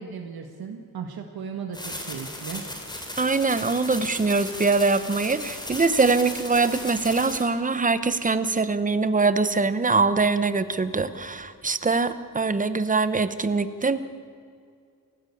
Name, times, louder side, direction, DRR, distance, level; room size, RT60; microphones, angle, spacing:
voice 1, 0.0-2.6, right 6 dB, 90° right, 4 dB, 1.7 m, -36 dB
sound 1, 1.7-7.4, left 1 dB, 10° left, 3.1 m, -36 dB
voice 2, 3.2-14.0, right 4 dB, 20° right, 12 dB, 0.9 m, -23 dB
28.0 x 15.5 x 8.5 m, 2.2 s
wide cardioid pair, 170°, 36 cm